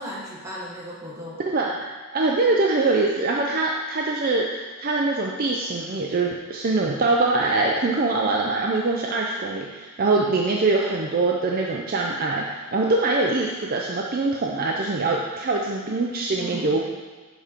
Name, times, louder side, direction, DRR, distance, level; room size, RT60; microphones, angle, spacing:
voice 1, 0.0-1.4 10.1-10.2 16.4-16.9, equal, 15° right, -5 dB, 1.5 m, -36 dB
voice 2, 1.5-16.9, right 3 dB, 40° right, -1 dB, 0.5 m, -23 dB
7.1 x 4.3 x 5.1 m, 1.4 s
head